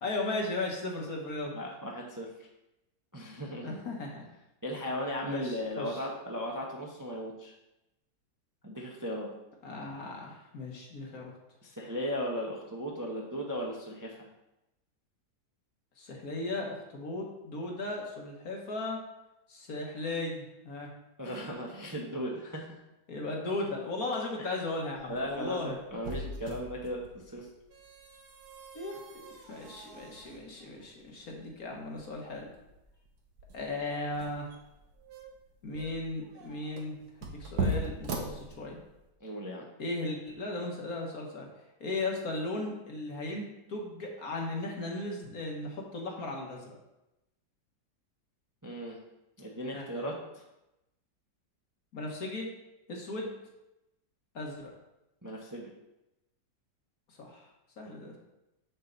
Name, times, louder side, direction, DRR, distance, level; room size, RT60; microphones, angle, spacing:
voice 1, 0.0-1.6 3.6-4.2 5.2-6.0 9.6-11.3 16.0-19.0 19.5-20.9 23.1-25.8 28.7-32.5 33.5-34.5 35.6-38.8 39.8-41.5 41.8-46.7 49.7-50.1 51.9-52.5 52.9-53.3 54.3-54.7 57.1-57.5 57.8-58.1, left 2 dB, 55° left, 0 dB, 1.8 m, -36 dB
voice 2, 1.5-2.3 3.1-3.8 4.6-7.5 8.6-9.3 11.6-14.3 21.2-22.8 24.4-24.5 25.1-27.5 39.2-39.7 48.6-49.0 49.4-50.4 55.2-55.7, equal, 15° right, -2 dB, 0.8 m, -37 dB
sound 1, 24.9-39.1, right 2 dB, 65° right, 1.6 m, -40 dB
7.5 x 6.6 x 4.0 m, 0.91 s
omnidirectional pair, 1.9 m